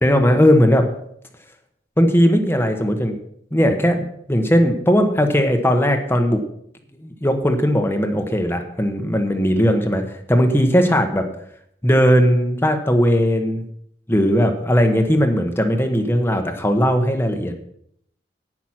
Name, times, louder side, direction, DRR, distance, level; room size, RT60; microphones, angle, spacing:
voice 1, 0.0-0.9 2.0-3.2 3.5-6.4 7.0-10.0 10.3-11.2 11.8-13.6 14.1-17.6, equal, 15° left, 5 dB, 1.1 m, -18 dB
11.0 x 9.2 x 5.9 m, 0.71 s
head